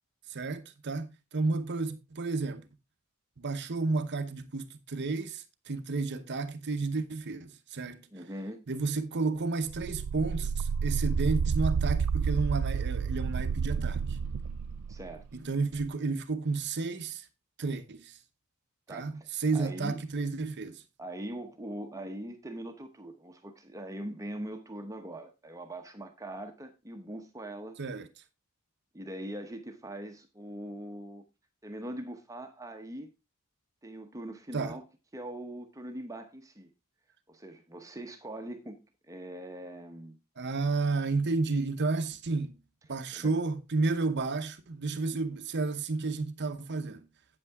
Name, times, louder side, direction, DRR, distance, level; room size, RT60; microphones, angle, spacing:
voice 1, 0.3-2.7 3.4-8.1 8.7-14.2 15.3-17.3 17.6-18.2 18.9-20.8 27.8-28.1 34.5-34.8 40.4-42.6 42.9-47.1, right 3 dB, 50° right, 0.8 m, -32 dB
voice 2, 8.1-8.6 14.9-15.2 18.9-19.3 19.5-20.0 21.0-27.8 28.9-31.2 31.6-33.1 33.8-34.8 35.1-36.7 37.3-38.8 39.1-40.2 43.1-43.3 45.1-45.2, right 1 dB, 15° right, 1.0 m, -41 dB
sound 1, 9.7-15.3 15.8-15.9, right 6 dB, 80° right, 0.4 m, -30 dB
8.8 x 8.4 x 3.5 m
head